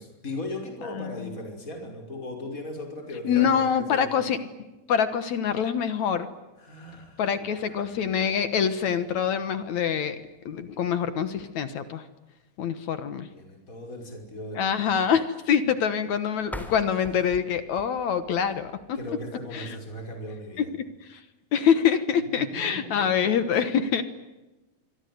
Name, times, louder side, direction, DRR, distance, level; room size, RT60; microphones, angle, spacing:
voice 1, 0.0-4.1 6.6-8.2 13.3-14.8 18.9-20.7 22.4-23.1, left 1 dB, 20° left, 3 dB, 5.5 m, -38 dB
voice 2, 1.0-1.3 3.2-4.4 4.9-6.3 7.2-10.2 10.5-12.0 12.6-13.3 14.6-19.0 19.5-19.8 20.6-20.7 21.1-21.2 21.5-24.0, left 7 dB, 65° left, 12 dB, 2.3 m, -25 dB
sound 1, 16.4-19.3, equal, ahead, 3.3 m, -43 dB
27.0 x 23.0 x 9.4 m, 1.1 s
omnidirectional pair, 4.1 m